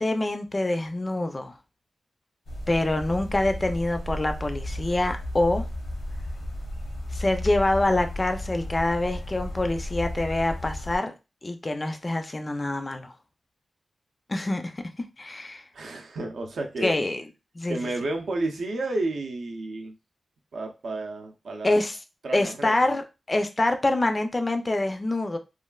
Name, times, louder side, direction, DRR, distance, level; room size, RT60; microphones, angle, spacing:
voice 1, 0.0-1.5 2.7-5.6 7.1-11.1 11.4-13.1 14.3-14.7 15.2-15.6 16.8-17.2 17.6-17.8 21.6-22.0 22.3-25.4, left 2 dB, 25° left, 0.3 m, -25 dB
sound 1, 2.5-11.0, left 1 dB, 80° left, 0.7 m, -34 dB
voice 2, 15.7-17.0 17.7-20.0 20.5-21.8 22.2-22.8, right 2 dB, 80° right, 0.5 m, -31 dB
3.1 x 2.3 x 2.2 m
wide cardioid pair, 145°, 0 cm